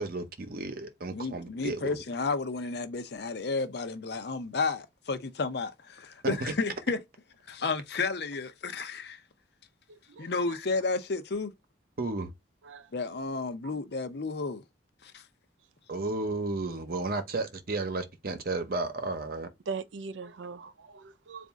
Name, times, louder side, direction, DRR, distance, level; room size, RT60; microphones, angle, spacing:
voice 1, 0.0-1.9 6.4-6.5 12.0-12.3 15.9-19.5, right 2 dB, 55° right, 0.8 m, -33 dB
voice 2, 1.1-7.0 7.5-9.2 10.2-11.5 12.9-14.6 15.0-15.2, left 4 dB, 60° left, 0.6 m, -32 dB
voice 3, 9.9-10.6 12.6-12.9 16.9-17.1 19.7-21.5, right 5 dB, 85° right, 0.5 m, -41 dB
4.1 x 2.5 x 3.5 m
head